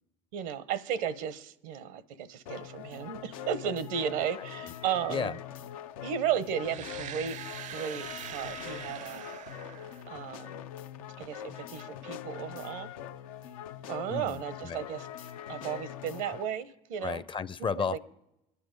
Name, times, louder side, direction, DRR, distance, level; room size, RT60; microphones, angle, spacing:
voice 1, 0.3-5.4 6.0-7.4 7.7-9.3 10.1-10.7 11.2-12.9 13.9-15.1 15.5-17.2 17.6-18.0, right 8 dB, 80° right, 0.9 m, -34 dB
sound 1, 2.5-16.5, left 10 dB, 85° left, 0.6 m, -43 dB
sound 2, 6.6-10.5, right 10 dB, 45° right, 0.5 m, -43 dB
voice 2, 14.1-14.8 17.0-18.0, left 6 dB, 30° left, 0.5 m, -33 dB
23.5 x 9.8 x 5.2 m
hypercardioid pair, 75°, 18 cm